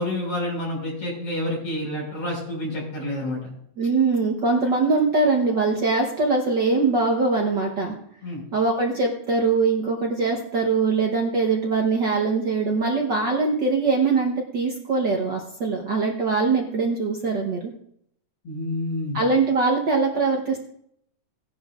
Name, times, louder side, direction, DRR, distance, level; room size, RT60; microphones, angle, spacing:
voice 1, 0.0-3.4 8.2-8.4 18.4-19.2, left 1 dB, 50° left, -3 dB, 6.3 m, -28 dB
voice 2, 3.8-8.0 8.5-17.7 19.1-20.6, right 4 dB, 60° right, 0 dB, 1.1 m, -22 dB
17.0 x 11.0 x 2.5 m, 0.69 s
omnidirectional pair, 3.5 m